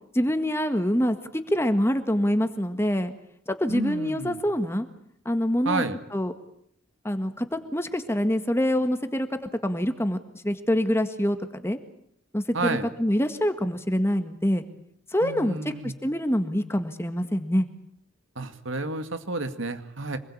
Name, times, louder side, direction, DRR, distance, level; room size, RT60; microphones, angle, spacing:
voice 1, 0.1-3.1 3.5-4.9 5.3-5.8 6.1-6.3 7.0-10.2 10.4-11.8 12.3-14.6 15.1-15.6 15.8-17.7, equal, 15° left, 9 dB, 1.8 m, -25 dB
voice 2, 3.7-4.4 5.7-6.0 12.5-12.9 15.2-15.9 18.4-20.2, right 2 dB, 80° right, 9 dB, 2.2 m, -30 dB
26.5 x 21.0 x 8.7 m, 0.72 s
head